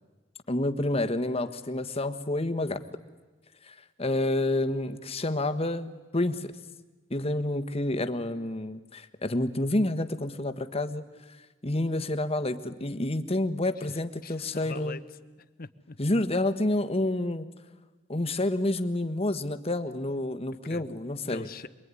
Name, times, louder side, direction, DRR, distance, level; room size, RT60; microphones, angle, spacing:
voice 1, 0.5-2.8 3.6-6.5 7.1-11.0 11.6-15.0 16.0-17.5 18.1-21.5, left 1 dB, 35° left, 10 dB, 1.4 m, -29 dB
voice 2, 13.8-15.0 15.4-16.0 20.6-20.9 21.3-21.7, left 4 dB, 55° left, 13 dB, 1.1 m, -42 dB
27.0 x 22.5 x 9.8 m, 1.2 s
head